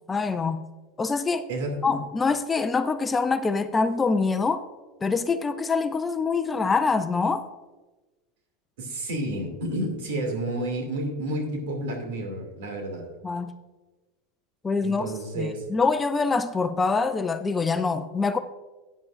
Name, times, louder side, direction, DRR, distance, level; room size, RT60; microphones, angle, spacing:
voice 1, 0.1-0.6 1.0-1.4 1.8-4.6 5.0-7.5 13.2-13.5 14.6-15.1 15.4-18.4, left 4 dB, 15° left, 0.5 m, -25 dB
voice 2, 1.5-1.8 8.8-13.1 14.8-15.6, right 1 dB, 80° right, 2.6 m, -30 dB
13.0 x 9.4 x 2.6 m
supercardioid pair, 130°, 0 cm